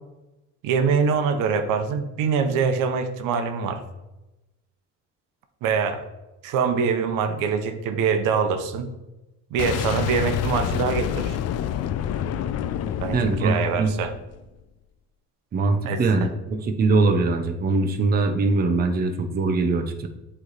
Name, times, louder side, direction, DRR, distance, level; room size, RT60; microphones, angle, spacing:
voice 1, 0.6-3.8 5.6-6.0 6.4-8.9 9.5-11.4 13.0-14.1 15.8-16.0, right 6 dB, 80° right, 7 dB, 0.8 m, -24 dB
Boom, 9.6-14.4, left 10 dB, 55° left, 0.4 m, -28 dB
voice 2, 13.1-13.9 15.5-20.1, right 3 dB, 30° right, 5 dB, 0.6 m, -22 dB
7.8 x 3.3 x 4.0 m, 1.0 s
cardioid pair, 105°, 32 cm